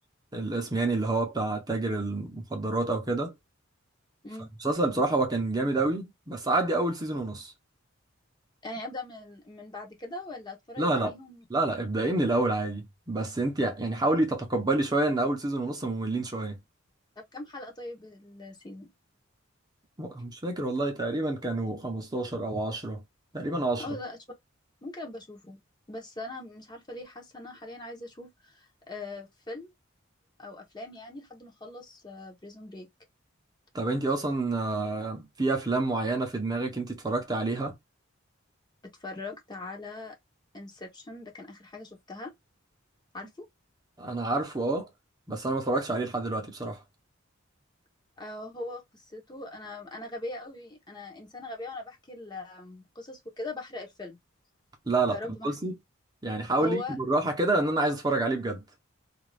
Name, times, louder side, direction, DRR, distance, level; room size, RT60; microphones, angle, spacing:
voice 1, 0.3-3.3 4.6-7.5 10.8-11.1 11.5-16.6 20.0-23.0 23.3-23.8 33.7-37.7 44.0-44.9 45.3-46.8 54.9-55.2 55.4-55.7 56.2-58.6, right 2 dB, 20° right, 0.6 m, -28 dB
voice 2, 8.6-11.4 17.2-18.9 23.8-24.2 24.8-25.6 25.9-29.7 30.4-32.9 38.8-40.2 40.5-42.3 43.1-43.5 48.2-54.2 55.1-55.5 56.6-57.0, left 2 dB, 20° left, 0.8 m, -40 dB
2.4 x 2.3 x 3.2 m
head